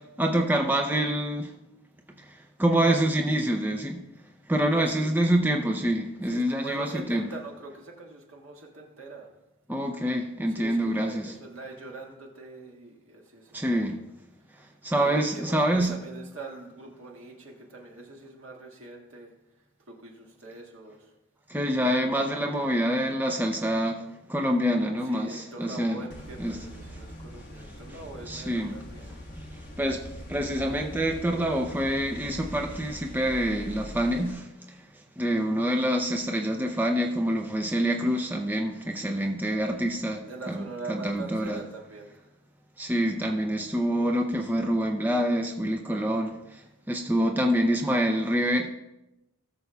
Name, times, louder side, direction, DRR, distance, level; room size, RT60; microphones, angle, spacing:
voice 1, 0.2-1.5 2.2-2.3 2.6-4.0 4.5-7.3 9.7-11.3 13.5-14.0 14.8-15.9 21.5-24.0 24.3-26.0 26.4-26.6 27.9-28.0 28.3-28.8 29.4-29.5 29.8-34.8 35.2-41.6 42.8-46.6 46.9-48.7, equal, 10° right, 2 dB, 0.5 m, -26 dB
voice 2, 4.7-5.1 6.2-9.3 10.5-14.0 14.9-19.3 19.9-21.1 25.0-29.2 40.3-42.3, right 3 dB, 75° right, 0 dB, 1.8 m, -43 dB
sound 1, 26.1-34.3, equal, 45° left, 1.4 m, -42 dB
18.0 x 6.8 x 2.3 m, 0.92 s
head